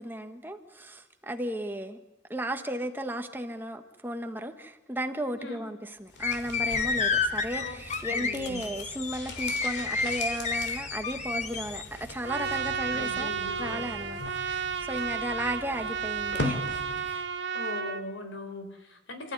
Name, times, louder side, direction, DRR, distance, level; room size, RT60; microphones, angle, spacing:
voice 1, 0.0-2.0 2.3-13.3 13.6-16.6 17.0-17.2, right 1 dB, 10° right, 1.5 m, -35 dB
voice 2, 5.3-5.6 7.6-7.8 8.1-8.6 12.9-13.9 17.5-19.3, left 1 dB, 90° left, 4.3 m, -39 dB
sound 1, 6.1-17.3 17.6-17.7, left 2 dB, 65° left, 2.9 m, -41 dB
sound 2, 6.2-11.8, left 4 dB, 40° left, 1.5 m, -30 dB
Trumpet, 12.2-18.0, right 6 dB, 70° right, 1.6 m, -32 dB
29.5 x 14.5 x 9.6 m
head